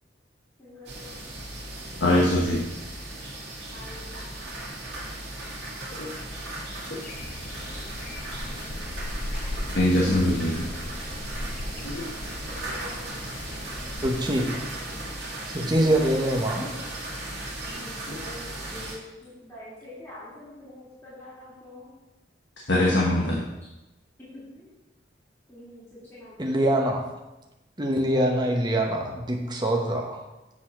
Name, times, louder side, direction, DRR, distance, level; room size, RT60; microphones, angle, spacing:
voice 1, 0.6-1.1 3.7-4.0 7.0-7.1 12.4-13.2 17.6-21.9 24.3-24.8 25.5-26.6, left 1 dB, 15° left, -11 dB, 2.6 m, -45 dB
sound 1, 0.8-18.9, right 1 dB, 65° right, 2.2 m, -37 dB
voice 2, 2.0-2.6 6.0-6.1 9.7-10.7 11.8-12.0 18.1-18.2 22.7-23.4, left 1 dB, 70° left, -4 dB, 1.2 m, -22 dB
sound 2, 7.0-14.5, left 1 dB, 45° left, 0.7 m, -37 dB
voice 3, 14.0-14.6 15.5-16.7 26.4-27.0 27.8-30.2, right 1 dB, 25° right, 0 dB, 0.9 m, -24 dB
7.7 x 4.1 x 6.0 m, 1.0 s
head